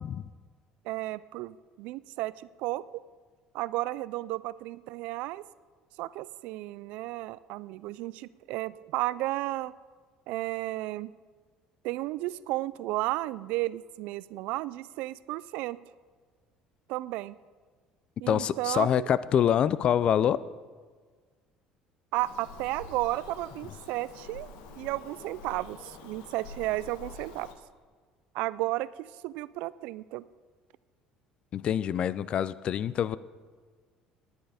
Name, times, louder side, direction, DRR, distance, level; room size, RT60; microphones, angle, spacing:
voice 1, 0.8-3.0 3.5-5.4 6.0-9.7 10.3-11.1 11.8-15.8 16.9-17.4 18.2-19.1 22.1-24.5 24.8-27.5 28.3-30.3, right 18 dB, 75° right, 19 dB, 0.3 m, -33 dB
voice 2, 18.3-20.4 31.5-33.2, left 9 dB, 45° left, 18 dB, 0.4 m, -25 dB
Bird vocalization bird call bird song, 22.1-27.5, left 4 dB, 85° left, 1.3 m, -47 dB
11.0 x 10.5 x 5.0 m, 1.5 s
cardioid pair, 110°, 2 cm